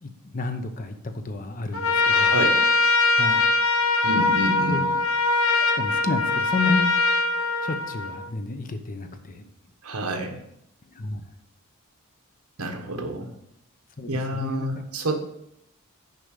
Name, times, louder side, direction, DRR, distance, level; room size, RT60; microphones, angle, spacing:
voice 1, 0.0-2.4 3.1-3.5 4.6-5.0 5.6-6.9 7.6-9.5 10.9-11.2 14.0-14.9, left 3 dB, 40° left, 7 dB, 0.8 m, -31 dB
Trumpet, 1.7-8.3, left 3 dB, 65° left, 1.0 m, -22 dB
voice 2, 2.1-2.6 4.0-4.8 9.8-10.4 12.6-13.3 14.1-15.1, right 1 dB, 75° right, 4 dB, 1.3 m, -28 dB
6.5 x 5.1 x 6.5 m, 0.77 s
head